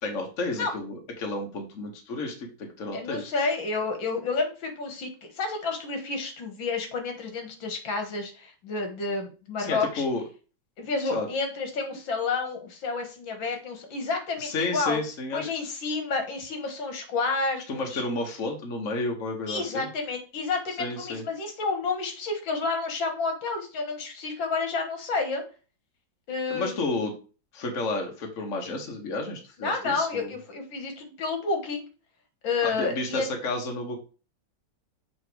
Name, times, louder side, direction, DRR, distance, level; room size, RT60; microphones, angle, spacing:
voice 1, 0.0-3.3 9.6-10.2 11.1-11.3 14.4-15.5 17.7-19.9 20.8-21.2 26.5-27.1 27.5-30.3 32.6-34.0, left 2 dB, 45° left, 1 dB, 1.5 m, -31 dB
voice 2, 2.9-10.0 10.8-15.0 15.3-18.0 19.5-25.4 26.3-26.9 29.6-31.9 32.4-33.3, left 4 dB, 75° left, 5 dB, 2.1 m, -30 dB
7.3 x 3.1 x 4.7 m, 0.35 s
omnidirectional pair, 2.1 m